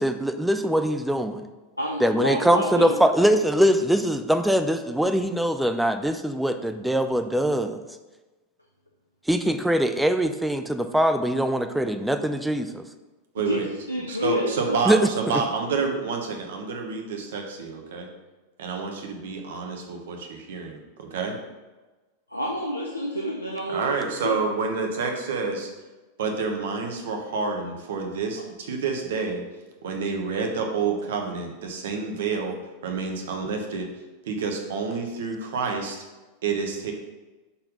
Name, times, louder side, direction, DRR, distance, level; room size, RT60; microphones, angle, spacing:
voice 1, 0.0-1.4 2.0-7.8 9.3-12.8 14.9-15.0 15.3-15.4, equal, 5° right, 7 dB, 0.4 m, -22 dB
voice 2, 1.8-3.0 13.4-14.8 22.3-24.4, left 1 dB, 85° left, -1 dB, 0.6 m, -29 dB
voice 3, 14.1-18.1 18.6-21.4 23.7-25.7 26.2-29.4 29.8-32.5 32.8-33.9 34.2-36.0 36.4-36.9, right 4 dB, 60° right, 3 dB, 1.1 m, -28 dB
5.6 x 4.5 x 5.3 m, 1.2 s
figure-of-eight pair, 90°, 0 cm